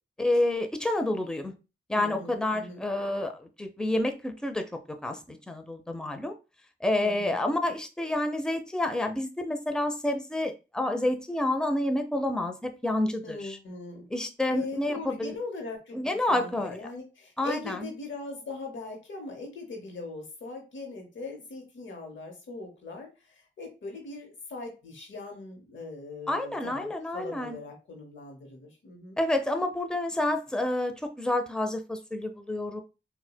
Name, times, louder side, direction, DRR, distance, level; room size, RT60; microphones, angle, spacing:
voice 1, 0.2-1.5 1.9-6.3 6.8-13.6 14.1-15.4 15.9-16.8 17.4-17.9 26.3-27.6 29.2-32.8, left 1 dB, 5° left, 6 dB, 0.5 m, -29 dB
voice 2, 1.9-2.9 7.0-7.4 13.2-14.1 14.5-29.2, left 3 dB, 90° left, 3 dB, 0.8 m, -40 dB
4.1 x 2.2 x 2.2 m, 0.29 s
cardioid pair, 40°, 19 cm